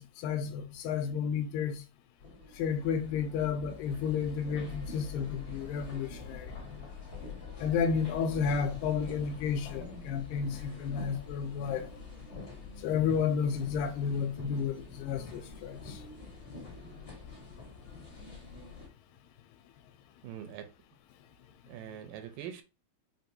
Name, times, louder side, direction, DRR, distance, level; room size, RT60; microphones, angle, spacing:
voice 1, 0.0-1.8 2.6-6.5 7.6-11.9 12.8-16.0, left 6 dB, 85° left, 2.3 m, -32 dB
sound 1, 2.2-18.9, left 4 dB, 25° left, 1.2 m, -45 dB
voice 2, 20.2-20.7 21.7-22.6, right 10 dB, 85° right, 2.2 m, -43 dB
5.7 x 2.5 x 2.7 m
omnidirectional pair, 4.0 m